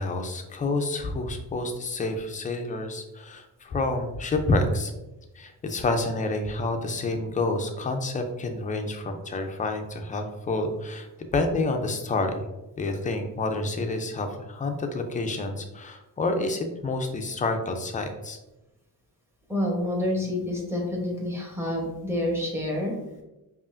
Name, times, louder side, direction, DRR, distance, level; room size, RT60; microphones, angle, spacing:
voice 1, 0.0-4.9 5.4-12.5 12.8-18.4, left 2 dB, 20° left, 5 dB, 0.3 m, -28 dB
voice 2, 19.5-23.0, left 1 dB, 5° right, -2 dB, 0.8 m, -28 dB
5.1 x 2.4 x 2.5 m, 1.0 s
cardioid pair, 135°, 39 cm